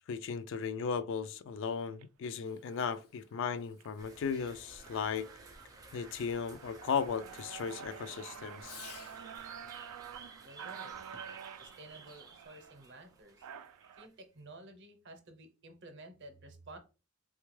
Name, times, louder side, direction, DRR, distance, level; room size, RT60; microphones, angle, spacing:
voice 1, 0.1-5.3 5.9-8.8, left 6 dB, 55° left, 0.3 m, -36 dB
sound 1, 1.9-2.0 2.7-2.9 3.4-3.9 4.3-4.4 4.6-14.1, right 8 dB, 80° right, 0.3 m, -49 dB
Fireworks, 2.3-9.4 11.0-11.5, left 7 dB, 75° left, 0.7 m, -58 dB
sound 2, 4.0-14.4, right 3 dB, 15° right, 0.5 m, -55 dB
voice 2, 10.4-11.0 11.6-13.5 13.9-16.8, right 2 dB, 55° right, 0.7 m, -52 dB
3.6 x 2.3 x 3.1 m
head